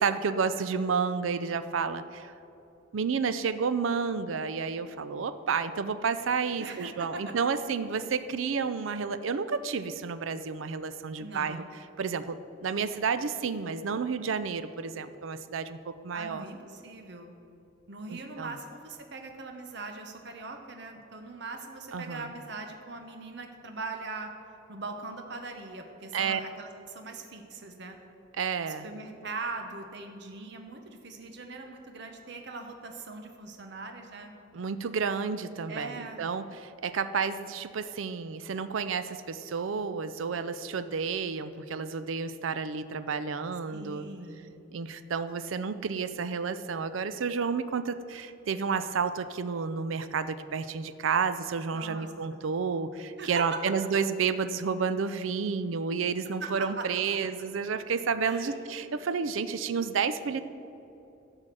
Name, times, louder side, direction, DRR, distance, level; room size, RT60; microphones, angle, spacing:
voice 1, 0.0-2.3 2.9-11.6 12.0-15.8 16.0-16.4 18.1-18.5 21.9-22.3 26.1-26.4 28.4-28.9 34.5-44.1 44.7-60.4, right 5 dB, 80° right, 12 dB, 0.5 m, -31 dB
voice 2, 6.6-7.3 11.2-11.7 16.1-17.4 17.9-24.3 24.7-28.0 28.7-34.3 35.7-36.2 43.7-44.6 51.7-52.4 53.2-53.5 56.2-57.2 58.2-58.6, right 3 dB, 60° right, 4 dB, 0.9 m, -41 dB
12.5 x 4.9 x 7.6 m, 2.9 s
head